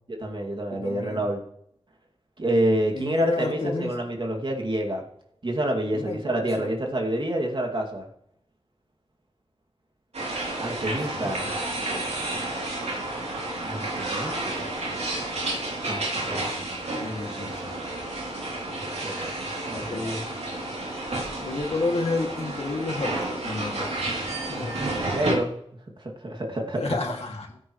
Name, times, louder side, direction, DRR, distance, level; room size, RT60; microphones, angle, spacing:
voice 1, 0.1-1.4 2.4-5.0 5.4-8.0 10.6-11.5 13.6-14.7 15.8-16.3 19.0-20.1 23.8-23.9 24.3-24.4 25.1-25.6 26.0-27.0, right 1 dB, 45° right, 1 dB, 2.4 m, -28 dB
voice 2, 0.7-1.2 2.9-3.9 5.9-6.7 10.8-11.5 17.0-17.8 19.7-20.2 21.4-23.9 24.5-24.8 26.8-27.5, left 3 dB, 70° left, 1 dB, 2.3 m, -31 dB
sound 1, 10.1-25.4, right 2 dB, 80° right, 3.1 m, -31 dB
16.0 x 9.7 x 3.2 m, 0.72 s
wide cardioid pair, 65°, 11 cm